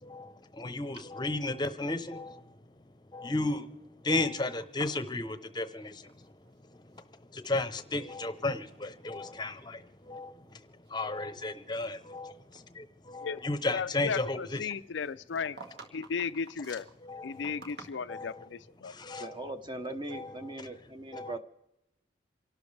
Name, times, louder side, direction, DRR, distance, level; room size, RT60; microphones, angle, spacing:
voice 1, 0.0-2.6 3.1-3.8 4.0-6.3 6.7-14.7 17.0-17.6 18.1-18.5 18.8-19.4 20.1-20.7 21.1-21.4, left 2 dB, 25° left, 11 dB, 0.8 m, -35 dB
sound 1, 4.6-6.6 6.8-7.6 8.3-8.8 9.1-9.4 10.0-10.1 10.7-12.2 12.5-12.7 14.9-18.4, right 3 dB, 55° right, 2.0 m, -51 dB
voice 2, 13.7-15.6 15.9-16.9 17.2-18.9, left 5 dB, 75° left, 12 dB, 0.5 m, -35 dB
voice 3, 19.2-21.4, right 2 dB, 25° right, 8 dB, 0.9 m, -39 dB
28.5 x 12.0 x 3.3 m, 0.92 s
head